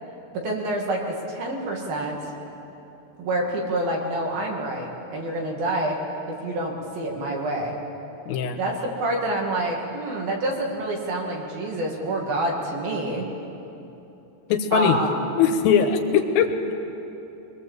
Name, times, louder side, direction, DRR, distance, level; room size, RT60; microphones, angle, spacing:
voice 1, 0.3-2.2 3.2-6.0 6.3-7.8 8.6-13.3 14.7-15.2, right 1 dB, 55° right, -1 dB, 3.6 m, -27 dB
voice 2, 8.3-8.6 14.5-15.0 15.4-16.7, left 7 dB, 85° left, 6 dB, 4.0 m, -21 dB
23.5 x 21.5 x 7.5 m, 3.0 s
omnidirectional pair, 5.7 m